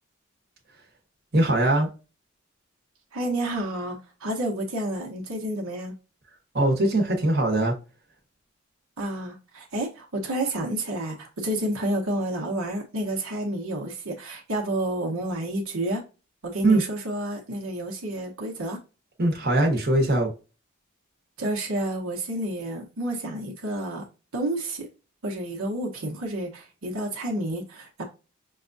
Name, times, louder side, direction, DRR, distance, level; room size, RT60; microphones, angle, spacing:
voice 1, 1.3-1.9 6.5-7.7 16.6-16.8 19.2-20.3, right 2 dB, 45° right, 1.1 m, -21 dB
voice 2, 3.1-5.9 9.0-16.0 16.4-18.8 21.4-24.0 24.3-24.9 25.2-28.0, right 1 dB, 75° right, 1.0 m, -30 dB
5.7 x 2.3 x 2.6 m
head